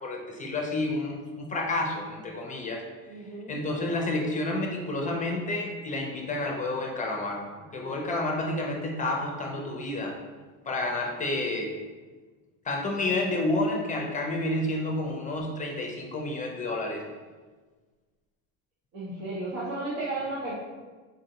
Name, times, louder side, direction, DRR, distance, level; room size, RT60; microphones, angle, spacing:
voice 1, 0.0-2.8 3.5-7.4 7.7-10.2 10.7-11.7 12.6-17.0, left 2 dB, 20° left, 0 dB, 0.4 m, -30 dB
voice 2, 3.1-3.6 7.8-8.1 18.9-20.5, right 2 dB, 90° right, -9 dB, 1.0 m, -34 dB
3.8 x 2.6 x 2.8 m, 1.4 s
cardioid pair, 115°, 38 cm